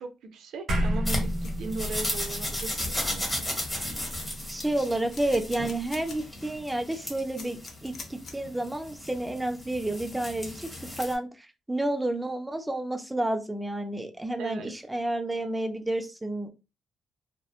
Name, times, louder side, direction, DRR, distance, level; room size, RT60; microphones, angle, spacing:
voice 1, 0.0-1.3 1.6-3.5 14.4-14.7, right 3 dB, 75° right, 6 dB, 0.5 m, -38 dB
sound 1, 0.7-5.3, equal, 50° right, 1.0 m, -32 dB
sound 2, 1.1-11.1, left 1 dB, 10° left, 1.0 m, -35 dB
sound 3, 1.4-1.6 2.4-2.5 2.8-3.0 3.5-3.6 3.8-4.6 5.1-6.2 6.6-6.7 7.4-8.3, left 3 dB, 45° left, 0.6 m, -43 dB
voice 2, 4.5-10.7 11.0-16.5, right 1 dB, 5° right, 6 dB, 0.3 m, -30 dB
2.9 x 2.0 x 2.3 m, 0.28 s
cardioid pair, 155°, 0 cm